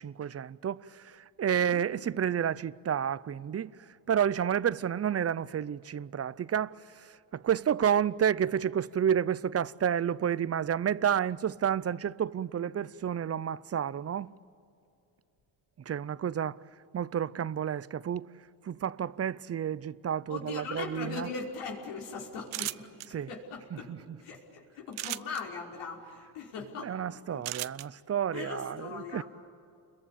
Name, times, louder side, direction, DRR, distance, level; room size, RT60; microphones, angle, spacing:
voice 1, 0.0-3.7 4.1-14.3 15.9-16.6 16.9-18.3 18.6-21.3 23.1-23.3 23.7-24.0 26.8-29.2, right 8 dB, 30° right, 0.6 m, -30 dB
voice 2, 20.3-23.0 23.3-23.9 24.2-26.9 27.3-27.4 28.3-29.2, left 4 dB, 85° left, 5.4 m, -40 dB
sound 1, 22.5-23.1 24.9-25.4 27.4-27.9, right 16 dB, 75° right, 0.8 m, -35 dB
29.5 x 22.5 x 8.7 m
cardioid pair, 100°, 48 cm